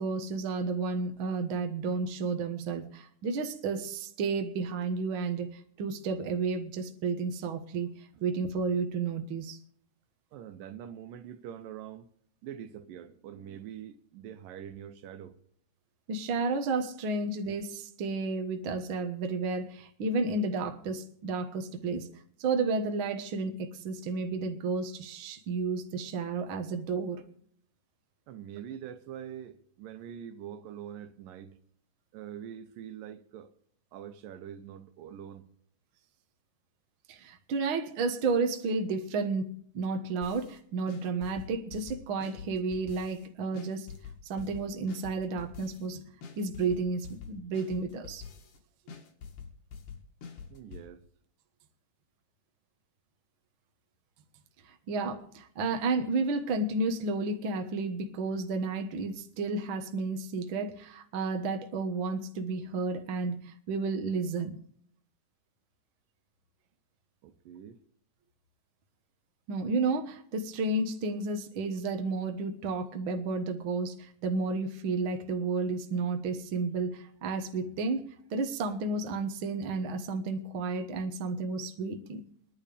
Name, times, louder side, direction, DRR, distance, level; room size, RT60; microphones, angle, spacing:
voice 1, 0.0-7.9 8.2-9.6 16.1-22.1 22.4-27.2 37.1-43.9 44.2-46.0 46.4-48.2 54.9-64.6 69.5-82.2, right 3 dB, 55° right, 1.6 m, -32 dB
voice 2, 10.3-12.1 12.4-15.4 28.3-31.6 32.1-33.5 33.9-35.5 50.5-51.0 67.2-67.8, right 9 dB, 85° right, 2.6 m, -44 dB
sound 1, 40.2-40.6 40.9-43.3 43.5-45.9 46.2-48.6 48.9-50.9, left 6 dB, 75° left, 3.4 m, -45 dB
24.0 x 10.5 x 3.4 m
omnidirectional pair, 3.8 m